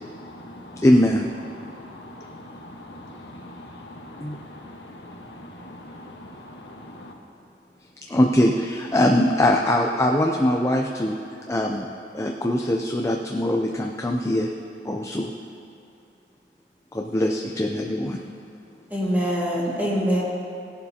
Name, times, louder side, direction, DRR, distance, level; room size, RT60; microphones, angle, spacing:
voice 1, 0.2-0.8 1.6-7.1, left 1 dB, 75° left, 0 dB, 1.3 m, -42 dB
voice 2, 0.8-1.3 4.2-4.4 8.1-11.2 11.5-11.9 12.1-14.5 14.8-15.3 16.9-18.2, left 1 dB, 15° left, 1 dB, 0.5 m, -22 dB
voice 3, 18.9-20.2, equal, 10° right, -5 dB, 2.0 m, -23 dB
16.5 x 10.5 x 2.9 m, 2.7 s
head